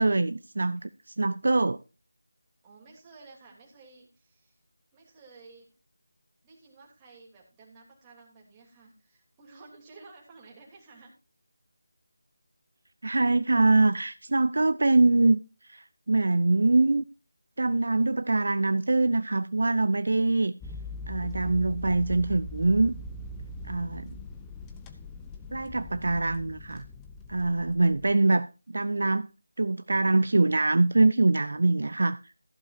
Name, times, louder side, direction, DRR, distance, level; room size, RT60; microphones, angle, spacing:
voice 1, 0.0-1.8 13.0-15.4 15.6-17.0 17.6-20.5 21.1-22.9 23.7-24.1 25.5-26.9 27.3-29.3 29.6-32.2, right 2 dB, 55° right, 0.5 m, -24 dB
voice 2, 2.6-4.6 4.9-5.7 6.4-11.1, right 3 dB, 15° right, 3.2 m, -53 dB
sound 1, 20.6-28.1, left 1 dB, 10° left, 0.8 m, -41 dB
14.5 x 11.5 x 2.7 m
figure-of-eight pair, 165°, 0 cm